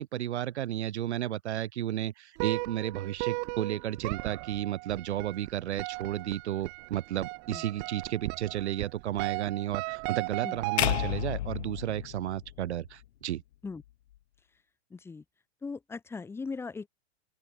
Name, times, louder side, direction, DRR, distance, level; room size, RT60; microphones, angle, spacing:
voice 1, 0.0-13.4, right 12 dB, 80° right, 1.1 m, -33 dB
sound 1, 2.4-11.4, right 40 dB or more, 30° right, 1.7 m, -37 dB
sound 2, 10.8-13.0, left 13 dB, 70° left, 1.0 m, -31 dB
voice 2, 14.9-15.2 15.6-16.9, left 4 dB, 5° left, 1.9 m, -39 dB
open air
supercardioid pair, 160°, 33 cm